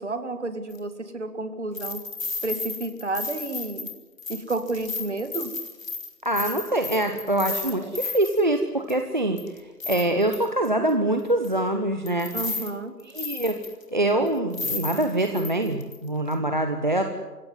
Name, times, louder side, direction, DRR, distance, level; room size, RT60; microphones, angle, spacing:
voice 1, 0.0-2.0 2.4-3.9 4.3-5.5 7.8-8.0 12.3-13.0, right 2 dB, 45° right, 10 dB, 2.2 m, -31 dB
sound 1, 0.7-0.8 1.7-8.4 8.9-9.0 9.4-10.7 11.4-11.5 12.1-12.7 13.0-13.8 14.3-14.4 14.5-16.0 16.3-16.4, left 4 dB, 50° left, 3.4 m, -33 dB
voice 2, 6.2-9.4 9.9-12.3 13.1-13.5 13.9-17.0, right 1 dB, 30° right, 6 dB, 1.1 m, -24 dB
28.5 x 17.0 x 9.5 m, 1.2 s
figure-of-eight pair, 160°, 49 cm